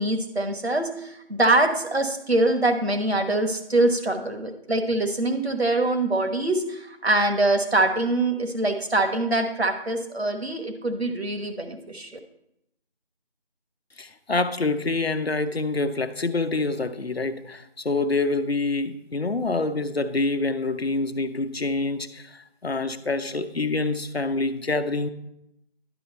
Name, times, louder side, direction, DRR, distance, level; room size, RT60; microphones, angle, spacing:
voice 1, 0.0-12.1, right 2 dB, 85° right, 6 dB, 1.3 m, -24 dB
voice 2, 14.0-25.1, left 3 dB, 75° left, 8 dB, 0.9 m, -26 dB
11.0 x 6.0 x 4.1 m, 0.78 s
figure-of-eight pair, 170°, 31 cm